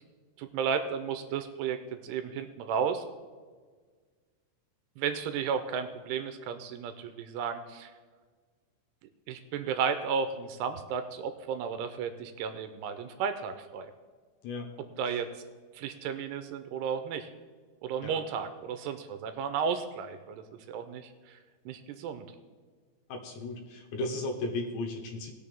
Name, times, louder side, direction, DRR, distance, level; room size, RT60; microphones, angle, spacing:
voice 1, 0.4-3.0 5.0-7.9 9.3-13.9 15.0-15.3 15.7-17.3 17.8-21.4 21.7-22.3, right 6 dB, 85° right, 8 dB, 2.5 m, -33 dB
voice 2, 23.1-25.3, left 2 dB, 75° left, 3 dB, 3.2 m, -35 dB
19.5 x 6.8 x 3.5 m, 1.5 s
omnidirectional pair, 5.3 m